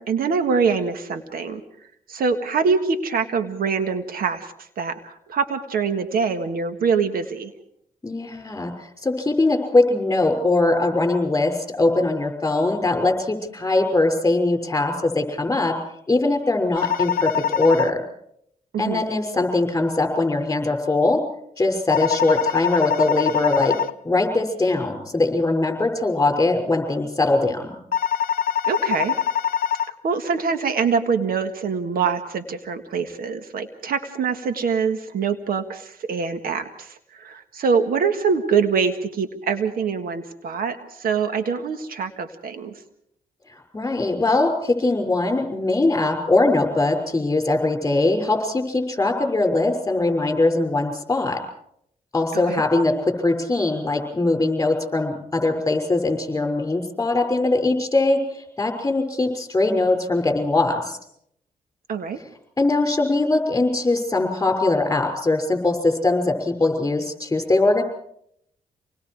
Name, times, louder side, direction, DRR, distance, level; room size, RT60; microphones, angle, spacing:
voice 1, 0.0-1.6 2.1-7.5 18.7-19.0 28.7-29.2 29.9-42.7 52.3-52.6 61.9-62.2, right 5 dB, 80° right, 9 dB, 1.7 m, -24 dB
voice 2, 8.0-8.7 9.0-15.7 16.1-18.0 18.8-21.2 21.6-23.8 24.0-27.8 43.5-51.4 52.1-61.0 62.6-67.8, left 2 dB, 20° left, 4 dB, 6.0 m, -21 dB
sound 1, 16.8-17.9 21.9-23.9 27.9-29.9, left 9 dB, 80° left, 0.8 m, -23 dB
27.0 x 20.0 x 4.8 m, 0.72 s
cardioid pair, 80°, 15 cm